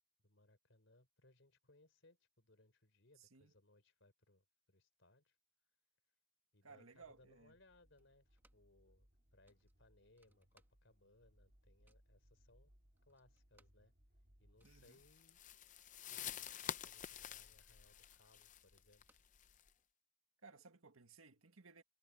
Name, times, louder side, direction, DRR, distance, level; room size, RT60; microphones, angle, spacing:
voice 1, 0.2-5.4 6.5-12.7 13.1-13.9 14.4-15.4 15.9-19.1, left 2 dB, 65° left, 3.9 m, -70 dB
voice 2, 3.2-3.5 6.6-7.6 14.6-15.0 20.4-21.8, right 4 dB, 85° right, 1.8 m, -61 dB
sound 1, 7.0-15.2, equal, 45° right, 4.0 m, -72 dB
sound 2, 8.0-8.8 9.1-9.2 9.5-11.1 11.4-12.2 12.7-12.8 13.0-16.8 17.1-19.9, right 2 dB, 10° right, 2.0 m, -78 dB
sound 3, 14.8-19.7, left 9 dB, 35° left, 0.6 m, -49 dB
head